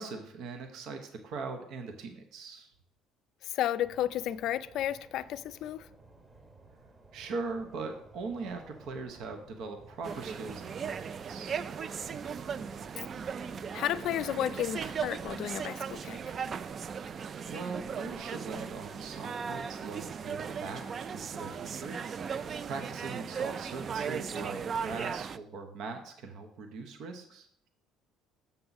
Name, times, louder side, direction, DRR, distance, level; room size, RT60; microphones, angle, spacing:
voice 1, 0.0-2.7 7.1-11.6 17.5-27.5, right 4 dB, 70° right, 0.8 m, -41 dB
voice 2, 3.4-5.9 13.7-16.2, left 12 dB, 65° left, 0.3 m, -32 dB
sound 1, 3.8-16.7, right 2 dB, 25° right, 1.0 m, -55 dB
sound 2, 10.0-25.4, right 6 dB, 45° right, 0.3 m, -37 dB
6.9 x 5.9 x 4.0 m
supercardioid pair, 90°, 0 cm